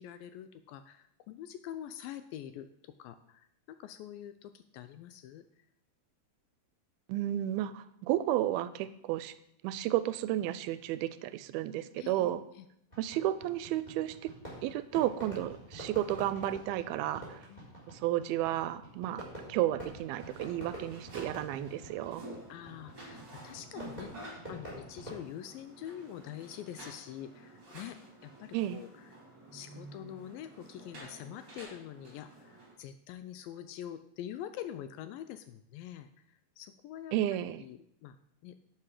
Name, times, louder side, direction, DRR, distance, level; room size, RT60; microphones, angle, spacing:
voice 1, 0.0-5.5 12.0-12.7 17.5-17.7 22.5-24.1 24.5-28.0 28.2-29.2 29.5-36.1 36.6-37.2 37.6-38.2 38.4-38.6, left 11 dB, 80° left, 10 dB, 2.1 m, -45 dB
voice 2, 7.1-9.3 9.6-12.4 13.0-14.3 14.6-17.4 17.9-22.3 28.5-28.8 37.1-37.6, right 13 dB, 85° right, 14 dB, 2.4 m, -32 dB
Fireworks, 12.9-25.2, right 1 dB, 10° left, 3.8 m, -47 dB
sound 1, 20.1-32.7, right 1 dB, 30° right, 3.3 m, -51 dB
11.5 x 7.7 x 4.9 m, 0.76 s
omnidirectional pair, 4.4 m